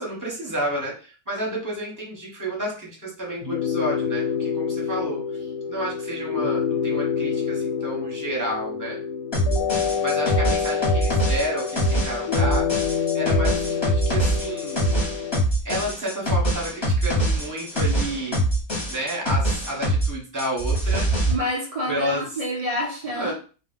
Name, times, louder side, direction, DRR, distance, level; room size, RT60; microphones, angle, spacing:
voice 1, 0.0-9.0 9.8-12.7 13.1-14.8 15.6-18.4 18.9-21.1 21.9-22.2 23.1-23.3, right 1 dB, 15° right, 0.8 m, -30 dB
sound 1, 3.4-15.4, left 7 dB, 80° left, 1.0 m, -27 dB
sound 2, 9.3-20.1 20.4-21.3, right 1 dB, 25° left, 0.7 m, -23 dB
voice 2, 21.3-23.3, equal, 60° right, 0.3 m, -28 dB
2.3 x 2.1 x 3.8 m
omnidirectional pair, 1.4 m